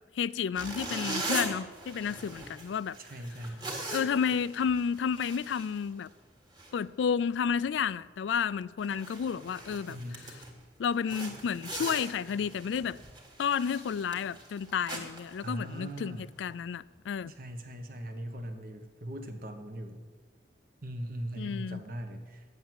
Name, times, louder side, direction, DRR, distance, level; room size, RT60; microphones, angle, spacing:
voice 1, 0.2-3.0 3.9-6.1 6.7-10.0 10.8-13.0 13.4-17.3 21.4-21.8, left 7 dB, 85° left, 0.3 m, -31 dB
sound 1, 0.6-6.3 6.6-6.8 7.3-7.5 7.9-8.0 8.5-8.6 8.8-10.6 11.1-16.1, right 2 dB, 25° right, 1.8 m, -40 dB
voice 2, 3.0-3.6 9.9-10.3 15.4-16.3 17.3-20.0 20.8-22.4, right 1 dB, 55° right, 1.2 m, -40 dB
9.4 x 8.1 x 7.7 m
head